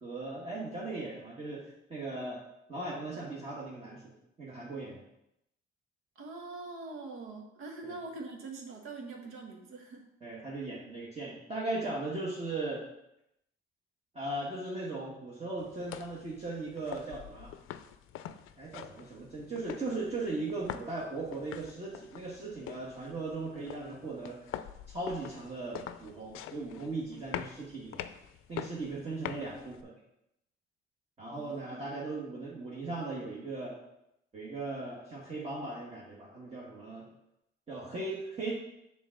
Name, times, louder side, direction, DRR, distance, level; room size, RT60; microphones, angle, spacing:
voice 1, 0.0-2.4 2.7-4.0 4.4-5.0 7.8-7.9 10.2-12.8 14.1-17.5 18.6-24.4 24.9-28.1 28.5-29.9 31.2-33.8 34.3-37.1 37.7-38.5, right 2 dB, 30° right, -6 dB, 1.4 m, -38 dB
voice 2, 6.1-10.1 31.3-31.9, right 3 dB, 90° right, 1 dB, 1.4 m, -44 dB
sound 1, 15.6-29.8, left 11 dB, 90° left, 0.5 m, -45 dB
6.9 x 3.7 x 6.3 m, 0.83 s
cardioid pair, 145°, 21 cm